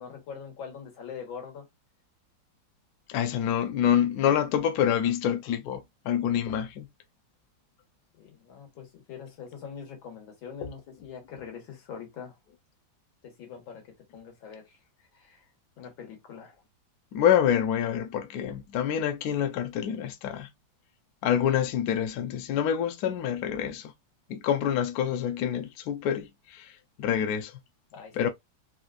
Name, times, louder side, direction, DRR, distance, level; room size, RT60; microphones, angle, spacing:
voice 1, 0.0-1.7 8.2-12.3 13.2-13.8 14.1-14.8 15.1-15.4 15.8-16.6 27.9-28.3, left 7 dB, 90° left, 2.1 m, -43 dB
voice 2, 3.1-6.9 17.1-20.5 21.2-23.9 24.3-26.7 27.0-27.5 28.1-28.3, left 9 dB, 70° left, 0.9 m, -27 dB
4.2 x 2.4 x 2.4 m
omnidirectional pair, 2.1 m